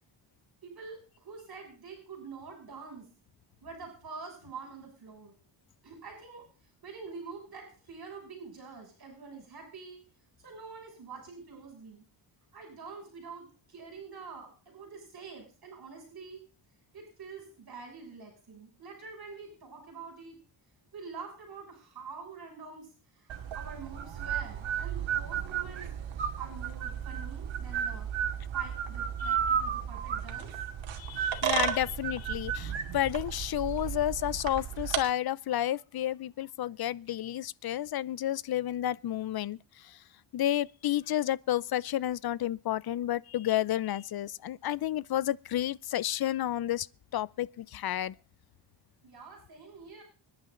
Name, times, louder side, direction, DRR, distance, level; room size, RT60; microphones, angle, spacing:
voice 1, 0.6-3.1 3.6-5.3 5.8-6.4 6.8-10.0 10.4-12.1 12.5-16.4 16.9-20.4 20.9-22.9 23.2-23.3 23.5-25.9 26.4-28.1 28.5-30.5 49.0-50.0, right 4 dB, 50° right, 6.4 m, -46 dB
sound 1, 23.3-35.0, right 8 dB, 75° right, 2.4 m, -33 dB
voice 2, 31.0-40.0 40.3-46.9 47.1-48.1, left 12 dB, 50° left, 0.6 m, -31 dB
25.5 x 10.5 x 3.9 m
cardioid pair, 120°, 47 cm